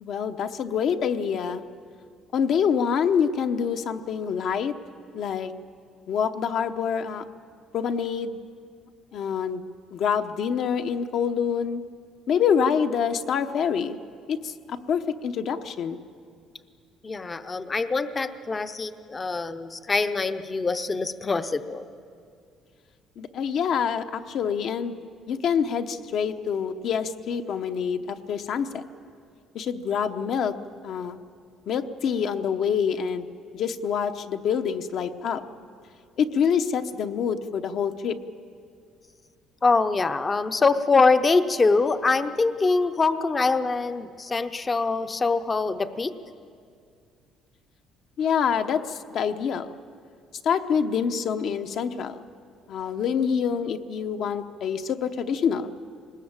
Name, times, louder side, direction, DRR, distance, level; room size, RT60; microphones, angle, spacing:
voice 1, 0.0-1.6 2.3-4.7 5.1-5.5 6.1-7.2 7.7-8.4 9.1-9.6 9.9-11.8 12.3-14.0 14.3-16.0 23.2-25.0 25.3-28.9 29.5-30.5 30.8-31.2 31.7-33.3 33.5-35.4 36.2-38.2 48.2-49.7 50.4-52.2 52.7-55.7, left 7 dB, 55° left, 8 dB, 0.9 m, -26 dB
voice 2, 17.0-21.9 39.6-46.1, left 4 dB, 20° left, 10 dB, 0.7 m, -24 dB
21.5 x 19.5 x 8.9 m, 2.3 s
cardioid pair, 150°, 0 cm